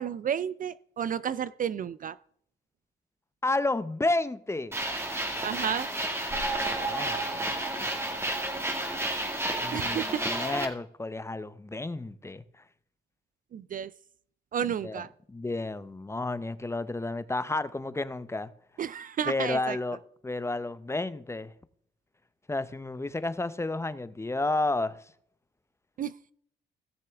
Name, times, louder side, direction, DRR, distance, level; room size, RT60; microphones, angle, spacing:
voice 1, 0.0-2.2 5.4-5.9 9.7-10.2 13.5-13.9 14.5-15.1 18.8-19.8 26.0-26.3, right 8 dB, 45° right, 0.4 m, -32 dB
voice 2, 3.4-4.8 6.6-7.6 9.6-12.4 14.6-18.5 19.3-20.0 20.2-21.5 22.5-25.0, left 2 dB, 15° left, 0.6 m, -31 dB
sound 1, 4.7-10.7, right 1 dB, 10° right, 1.9 m, -31 dB
16.5 x 6.7 x 3.4 m
cardioid pair, 90°, 20 cm